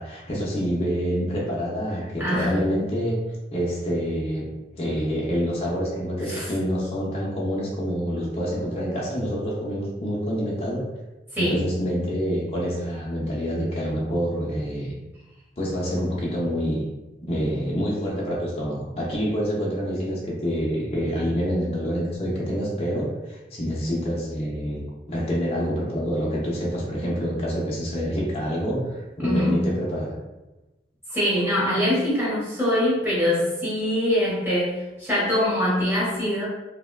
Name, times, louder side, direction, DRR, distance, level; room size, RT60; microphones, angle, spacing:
voice 1, 0.0-3.2 3.5-4.5 4.8-10.9 11.4-14.9 15.6-16.9 17.2-30.2, equal, 35° left, -5 dB, 0.6 m, -27 dB
voice 2, 2.2-2.7 6.2-6.5 11.3-11.6 29.2-29.6 31.1-36.5, equal, 10° right, -8 dB, 1.1 m, -23 dB
3.4 x 2.1 x 2.2 m, 1.1 s
head